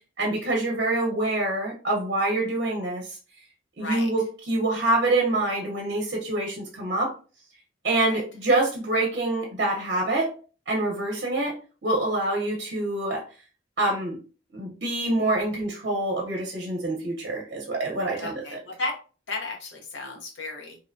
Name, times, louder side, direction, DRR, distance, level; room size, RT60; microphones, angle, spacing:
voice 1, 0.2-3.2 3.8-7.1 7.8-10.3 10.7-13.2 13.8-14.2 14.5-18.6, right 2 dB, 55° right, -2 dB, 0.7 m, -26 dB
voice 2, 3.8-4.1 8.0-8.2 18.2-19.0 19.3-20.8, left 2 dB, 80° left, 1 dB, 0.8 m, -34 dB
2.7 x 2.1 x 2.5 m, 0.36 s
head